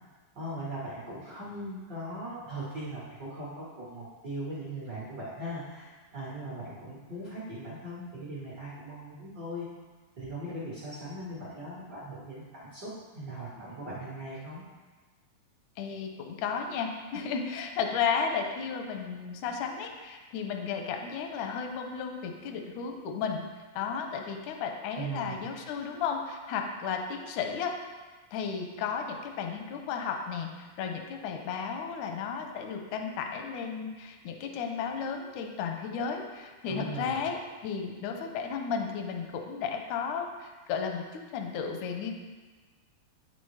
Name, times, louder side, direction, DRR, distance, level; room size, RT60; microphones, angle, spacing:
voice 1, 0.3-9.7 10.2-14.6 25.0-25.5 36.7-37.2, right 1 dB, 60° right, -9 dB, 1.0 m, -39 dB
voice 2, 15.8-23.4 23.7-27.7 28.3-37.4 37.6-42.1, left 6 dB, 80° left, 3 dB, 1.7 m, -34 dB
8.9 x 5.7 x 3.2 m, 1.3 s
omnidirectional pair, 4.2 m